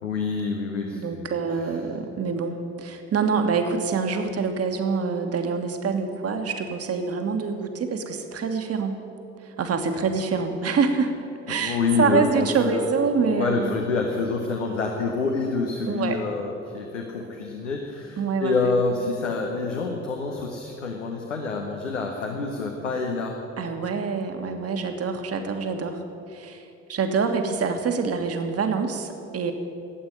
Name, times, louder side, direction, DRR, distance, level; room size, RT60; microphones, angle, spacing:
voice 1, 0.0-1.3 1.6-1.7 11.5-12.9 13.3-23.4, left 4 dB, 85° left, 1 dB, 1.0 m, -27 dB
voice 2, 0.9-9.0 9.4-11.1 11.5-13.8 15.9-16.2 18.2-18.7 23.6-26.0 26.3-29.5, right 5 dB, 40° right, 5 dB, 1.6 m, -26 dB
13.0 x 8.6 x 9.8 m, 2.8 s
figure-of-eight pair, 50°, 36 cm